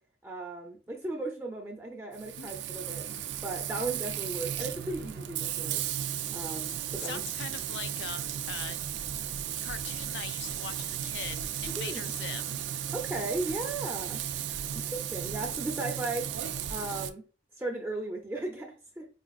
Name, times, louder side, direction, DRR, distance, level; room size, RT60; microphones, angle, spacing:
voice 1, 0.2-3.1 3.4-5.8 6.3-7.3 11.7-12.0 12.9-14.2 14.7-16.3 16.7-17.2 17.5-19.1, right 2 dB, 15° right, 0.5 m, -36 dB
Frying (food), 2.1-17.1, right 10 dB, 75° right, 0.3 m, -35 dB
voice 2, 7.0-8.8 9.6-12.6, left 8 dB, 75° left, 0.4 m, -41 dB
5.0 x 2.4 x 2.4 m
head